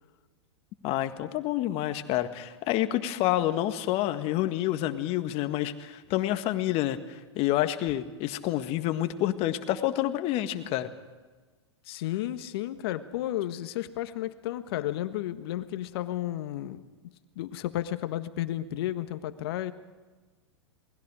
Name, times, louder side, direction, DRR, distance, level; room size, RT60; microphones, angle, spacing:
voice 1, 0.8-10.9, left 14 dB, 40° left, 9 dB, 1.8 m, -28 dB
voice 2, 11.9-16.8 17.3-19.7, left 13 dB, 60° left, 11 dB, 1.5 m, -32 dB
28.0 x 20.5 x 5.0 m, 1.3 s
hypercardioid pair, 105°, 15 cm